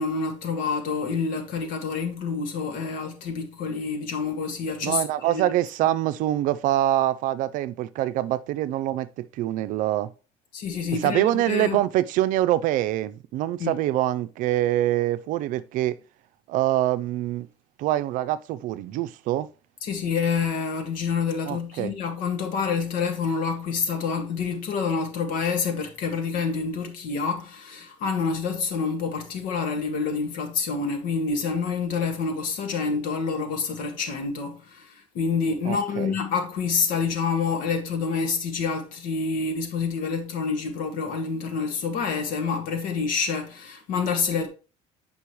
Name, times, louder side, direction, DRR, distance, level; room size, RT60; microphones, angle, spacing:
voice 1, 0.0-5.5 5.8-5.9 10.5-11.8 13.6-13.8 19.8-44.5, left 5 dB, 70° left, 1.9 m, -27 dB
voice 2, 4.8-10.1 11.0-16.0 16.5-17.5 17.8-19.5 21.5-21.9 35.7-36.2, right 14 dB, 65° right, 0.5 m, -25 dB
8.5 x 5.4 x 3.1 m
cardioid pair, 130°, 15 cm